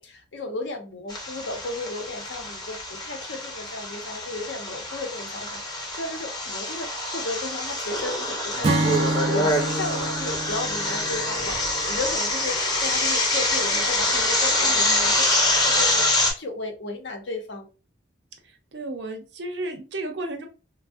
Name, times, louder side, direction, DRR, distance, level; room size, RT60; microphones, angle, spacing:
voice 1, 0.0-15.1 15.6-17.7, left 3 dB, 75° left, 0.6 m, -34 dB
sound 1, 1.1-16.3, left 1 dB, 20° left, 0.6 m, -25 dB
Acoustic guitar / Strum, 8.6-12.1, right 2 dB, 30° right, 0.3 m, -27 dB
voice 2, 14.5-15.1 18.4-20.5, right 2 dB, 70° right, 0.7 m, -34 dB
3.3 x 2.0 x 2.4 m
head